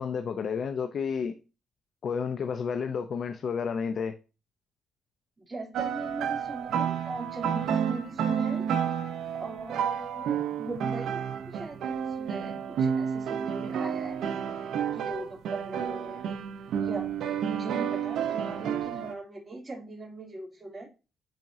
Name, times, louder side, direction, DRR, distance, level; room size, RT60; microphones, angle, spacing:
voice 1, 0.0-1.4 2.0-4.2, left 6 dB, 55° left, 0.7 m, -31 dB
voice 2, 5.5-8.6 9.4-11.2 11.5-14.2 14.9-16.2 16.8-20.9, right 2 dB, 25° right, 3.1 m, -39 dB
sound 1, 5.7-19.1, right 8 dB, 75° right, 0.8 m, -30 dB
10.5 x 4.4 x 2.7 m
cardioid pair, 90°, 0 cm